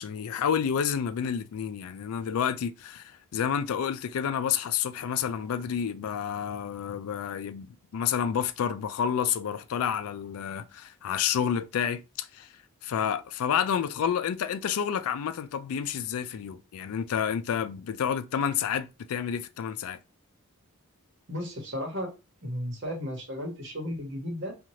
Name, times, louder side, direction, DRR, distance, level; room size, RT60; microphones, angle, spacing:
voice 1, 0.0-12.5 12.8-20.0, left 8 dB, 75° left, 0.3 m, -29 dB
voice 2, 21.3-22.1 22.4-24.5, equal, 55° right, 1.1 m, -34 dB
2.7 x 2.4 x 3.0 m
head